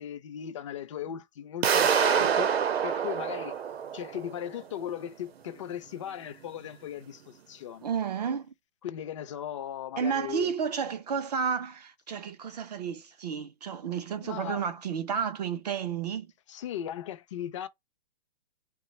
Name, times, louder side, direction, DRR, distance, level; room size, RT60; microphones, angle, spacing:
voice 1, 0.0-2.5 2.8-3.5 3.9-7.8 8.8-10.5 14.2-14.7 16.5-17.7, left 10 dB, 30° left, 0.4 m, -37 dB
sound 1, 1.6-4.5, right 7 dB, 85° right, 0.7 m, -26 dB
voice 2, 7.8-8.5 10.0-16.3, right 7 dB, 45° right, 0.4 m, -31 dB
2.9 x 2.1 x 4.0 m
hypercardioid pair, 155°, 30 cm